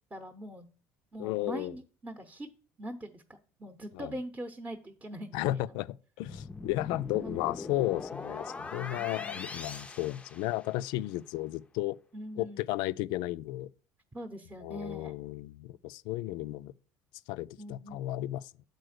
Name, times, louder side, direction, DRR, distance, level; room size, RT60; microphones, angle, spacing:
voice 1, 0.1-0.7 1.1-2.5 2.8-5.7 7.2-7.5 8.9-9.5 12.1-12.7 14.1-15.2 17.6-18.1, equal, 15° right, 0.8 m, -42 dB
voice 2, 1.2-1.7 3.9-4.1 5.3-12.0 12.4-13.7 14.6-16.7 17.3-18.4, left 16 dB, 75° left, 0.3 m, -34 dB
sound 1, 6.2-11.0, left 3 dB, 15° left, 0.5 m, -42 dB
7.9 x 4.3 x 6.5 m
supercardioid pair, 105°, 8 cm